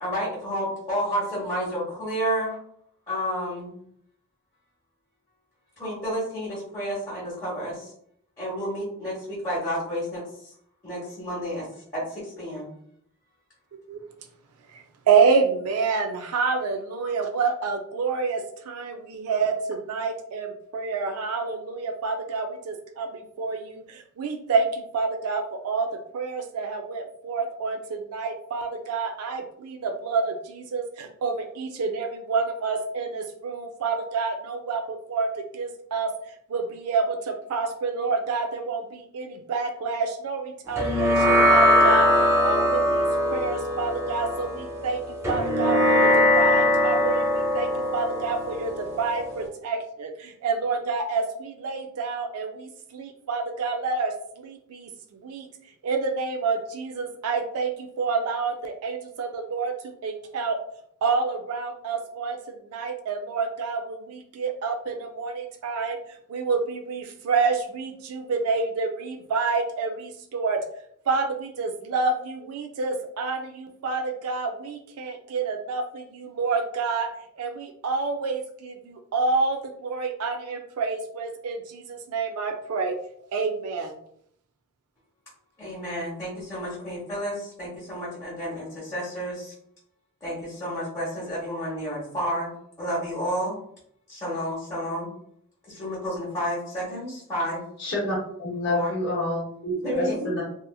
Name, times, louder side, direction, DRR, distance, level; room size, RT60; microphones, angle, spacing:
voice 1, 0.0-2.6 3.1-3.8 5.8-7.9 8.4-10.5 10.8-11.6 11.9-12.7 85.6-89.5 90.2-92.5 92.8-93.6 94.1-95.1 95.7-97.6 98.7-98.9 99.8-100.3, equal, 15° left, -9 dB, 1.0 m, -30 dB
voice 2, 14.7-25.9 26.1-42.1 42.4-55.5 55.8-60.6 61.0-66.0 66.3-70.6 71.1-77.1 77.4-83.0 83.3-84.0 85.9-86.0, right 4 dB, 80° right, 5 dB, 0.4 m, -28 dB
sound 1, 40.8-49.5, left 1 dB, 10° right, 0.4 m, -21 dB
voice 3, 97.8-100.4, left 1 dB, 50° left, -5 dB, 0.7 m, -28 dB
2.8 x 2.4 x 2.3 m, 0.68 s
head